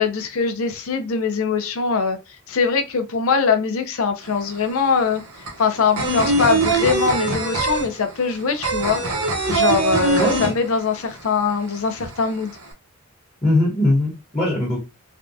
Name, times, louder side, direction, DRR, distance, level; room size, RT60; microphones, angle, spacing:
voice 1, 0.0-2.2 2.5-5.2 5.6-9.0 9.5-12.5, left 5 dB, 70° left, 0.5 m, -22 dB
sound 1, 4.2-4.3 4.6-11.2 11.4-11.5 11.8-12.6, right 2 dB, 75° right, 1.0 m, -22 dB
voice 2, 13.4-14.8, left 1 dB, 20° left, 1.2 m, -20 dB
3.4 x 2.3 x 2.6 m
head